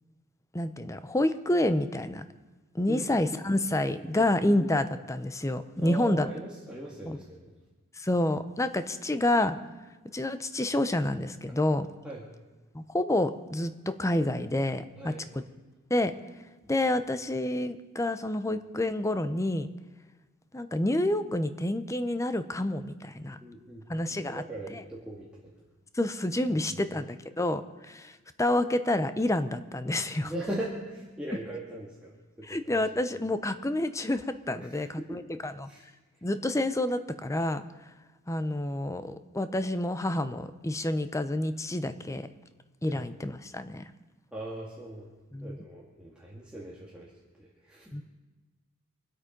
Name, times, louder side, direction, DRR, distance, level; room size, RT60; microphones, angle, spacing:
voice 1, 0.5-2.2 2.7-6.3 7.1-7.2 8.0-9.6 10.1-11.9 12.7-15.1 15.9-16.1 16.7-19.7 20.5-23.4 23.9-24.4 24.7-24.8 25.9-30.3 32.5-35.7 36.2-37.6 38.3-42.3 42.8-43.8 45.3-45.6 47.9-48.0, left 1 dB, 15° left, 11 dB, 0.7 m, -28 dB
voice 2, 2.9-3.3 4.0-4.3 5.8-7.5 12.0-12.2 14.9-15.3 16.6-16.7 23.4-23.9 24.2-25.6 26.5-26.6 26.9-27.0 30.2-33.0 34.6-35.2 35.6-35.9 42.9-43.1 44.3-45.1 45.4-47.9, right 1 dB, 5° right, -5 dB, 1.9 m, -40 dB
25.0 x 8.5 x 5.2 m, 1.2 s
head